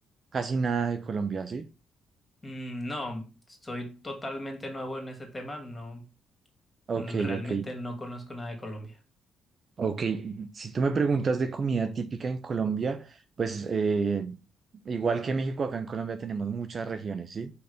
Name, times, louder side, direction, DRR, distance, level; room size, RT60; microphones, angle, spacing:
voice 1, 0.3-1.6 6.9-7.6 9.8-14.4 14.9-17.5, right 5 dB, 45° right, 0.7 m, -29 dB
voice 2, 2.4-6.0 6.9-9.0, left 1 dB, 20° left, 2.7 m, -37 dB
5.6 x 4.1 x 5.2 m
cardioid pair, 90°, 0 cm